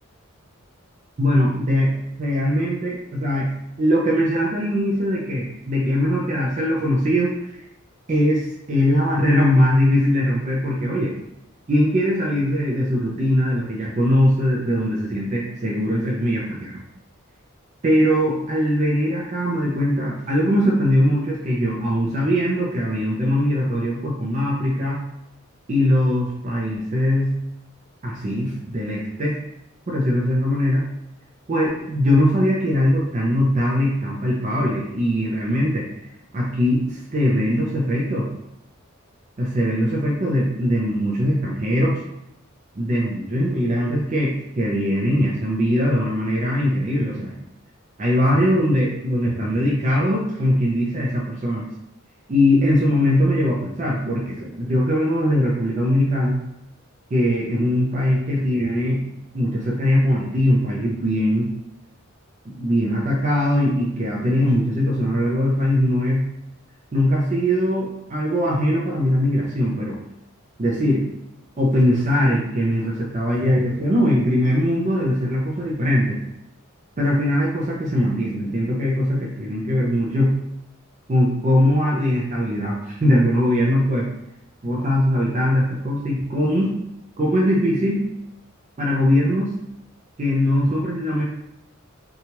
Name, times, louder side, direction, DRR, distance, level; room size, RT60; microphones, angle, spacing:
voice 1, 1.2-1.9 2.2-3.5 3.8-7.6 8.1-11.1 11.7-16.8 17.8-25.0 25.7-27.3 28.0-29.4 29.9-30.8 31.5-35.8 36.3-38.3 39.4-42.0 42.8-47.3 48.0-51.7 52.3-56.4 57.1-59.0 59.3-61.5 62.5-66.2 66.9-70.0 70.6-71.0 71.6-76.2 77.0-80.3 81.1-84.1 84.6-86.7 87.2-88.0 88.8-89.5 90.2-91.2, equal, 35° right, -4 dB, 0.4 m, -21 dB
2.9 x 2.3 x 2.8 m, 0.83 s
head